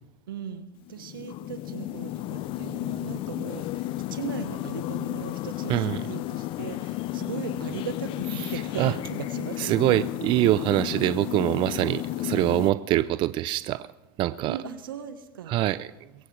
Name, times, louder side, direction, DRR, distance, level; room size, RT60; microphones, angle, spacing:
voice 1, 0.3-3.8 4.1-9.7 12.9-13.0 14.5-15.5, right 8 dB, 85° right, 10 dB, 1.4 m, -38 dB
sound 1, 0.9-12.7, left 15 dB, 50° left, 0.6 m, -33 dB
voice 2, 5.7-6.0 8.4-8.5 8.8-9.0 9.6-13.9 14.2-14.6 15.5-15.9, right 15 dB, 45° right, 16 dB, 0.4 m, -24 dB
22.0 x 17.0 x 3.4 m, 1.1 s
hypercardioid pair, 95°, 11 cm